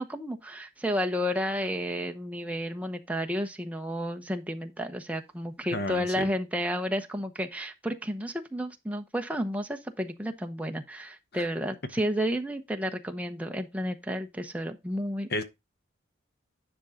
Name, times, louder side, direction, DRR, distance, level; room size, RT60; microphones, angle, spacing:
voice 1, 0.0-15.4, equal, 5° right, 0.9 m, -32 dB
voice 2, 5.7-6.3 11.3-11.5 15.3-15.4, left 2 dB, 50° left, 1.1 m, -31 dB
10.5 x 5.5 x 3.8 m
head